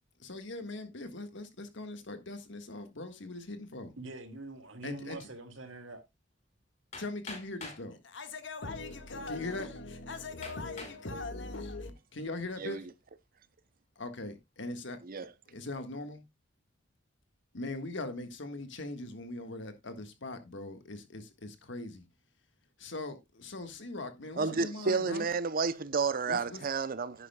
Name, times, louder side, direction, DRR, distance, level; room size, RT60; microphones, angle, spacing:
voice 1, 0.2-3.9 4.8-5.2 7.0-12.9 14.0-15.0 15.5-16.2 17.5-22.0 22.8-25.3 26.2-26.6, left 2 dB, 70° left, 1.6 m, -40 dB
voice 2, 4.0-6.0, right 2 dB, 80° right, 2.0 m, -44 dB
Hammer, 6.9-7.9 8.8-8.9 9.5-9.6 10.4-11.0 11.6-12.0, left 3 dB, 40° left, 4.8 m, -45 dB
voice 3, 24.4-27.3, right 4 dB, 50° right, 0.7 m, -31 dB
10.0 x 9.9 x 2.3 m
head